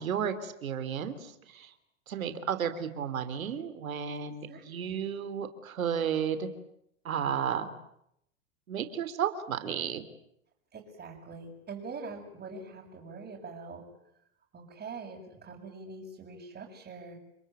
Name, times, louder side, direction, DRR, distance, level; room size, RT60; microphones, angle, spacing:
voice 1, 0.0-1.7 2.1-6.5 7.0-7.7 8.7-10.0, right 8 dB, 85° right, 10 dB, 3.5 m, -33 dB
voice 2, 4.5-5.0 10.7-13.9 14.5-17.2, right 4 dB, 25° right, -3 dB, 7.2 m, -44 dB
30.0 x 21.5 x 9.1 m, 0.77 s
hypercardioid pair, 115°, 40 cm